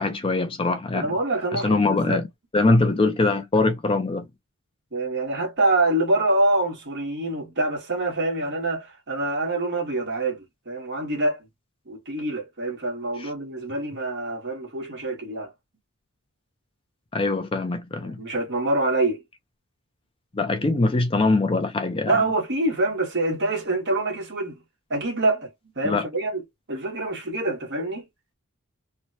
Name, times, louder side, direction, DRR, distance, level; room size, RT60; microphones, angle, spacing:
voice 1, 0.0-1.1 1.5-2.2 2.5-4.3 13.2-13.3 17.1-18.2 20.3-22.2 25.8-26.0, left 3 dB, 25° left, 0.4 m, -22 dB
voice 2, 0.9-2.2 4.9-11.5 11.9-15.5 18.2-19.2 22.1-24.6 24.9-26.4 26.7-28.1, right 2 dB, 50° right, 1.4 m, -25 dB
3.1 x 2.2 x 2.6 m
head